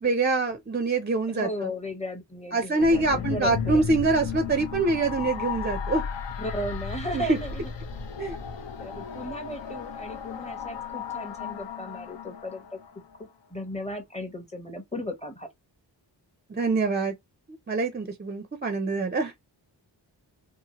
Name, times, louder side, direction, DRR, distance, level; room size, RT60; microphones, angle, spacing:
voice 1, 0.0-1.7 2.5-6.0 7.1-7.4 8.2-8.4 16.5-17.1 17.7-19.3, right 3 dB, 25° right, 0.4 m, -25 dB
voice 2, 1.3-3.8 6.4-7.7 8.8-12.8 13.2-15.5, equal, 15° left, 0.7 m, -36 dB
sound 1, 2.8-13.2, left 6 dB, 75° left, 0.7 m, -35 dB
2.8 x 2.5 x 2.8 m
wide cardioid pair, 110°, 44 cm